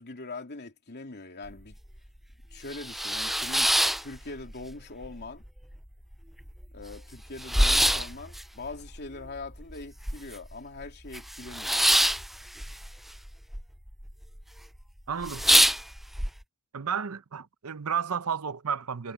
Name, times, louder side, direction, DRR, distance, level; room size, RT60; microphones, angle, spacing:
voice 1, 0.0-1.8 2.5-3.7 4.0-5.4 6.7-11.9, left 3 dB, 50° left, 3.0 m, -42 dB
sound 1, 1.5-1.6 2.0-2.1 2.5-4.7 5.0-5.8 6.1-6.2 6.4-10.5 10.8-13.6 13.9-14.4 14.8-14.9 15.2-16.3, equal, ahead, 0.3 m, -25 dB
voice 2, 15.1-15.4 16.7-19.1, right 7 dB, 80° right, 0.8 m, -32 dB
head